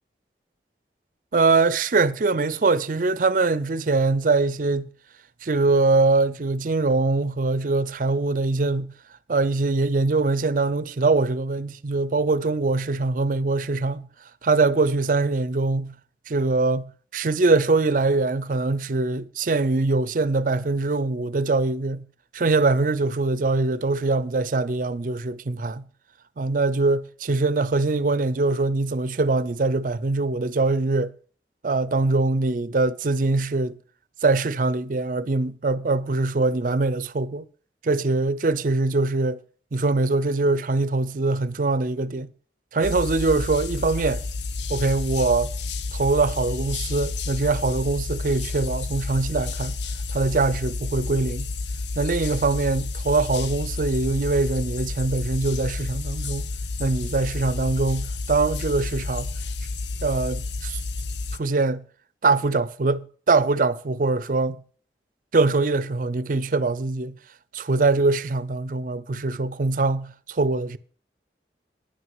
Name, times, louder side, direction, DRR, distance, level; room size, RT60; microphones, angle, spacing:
voice 1, 1.3-4.9 5.4-8.9 9.3-14.1 14.4-15.9 16.3-22.0 22.3-25.8 26.4-31.1 31.6-33.8 34.2-37.5 37.8-39.4 39.7-42.3 42.7-44.2 44.7-45.5 45.9-49.7 50.1-51.5 52.0-56.5 56.8-59.3 60.0-60.8 61.4-61.8 62.2-64.6 65.3-67.2 67.5-70.8, right 3 dB, 50° right, 0.5 m, -23 dB
sound 1, 42.8-61.4, left 3 dB, 80° left, 0.5 m, -30 dB
9.9 x 6.2 x 7.6 m
head